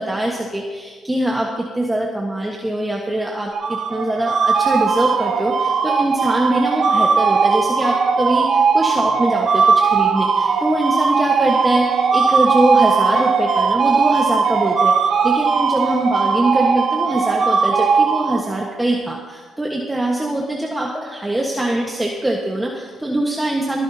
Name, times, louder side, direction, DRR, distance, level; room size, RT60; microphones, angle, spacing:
voice 1, 0.0-23.8, right 1 dB, 10° right, -1 dB, 1.4 m, -22 dB
sound 1, 3.5-18.8, right 5 dB, 55° right, 0.8 m, -18 dB
25.5 x 10.5 x 2.8 m, 1.5 s
cardioid pair, 90°, 0 cm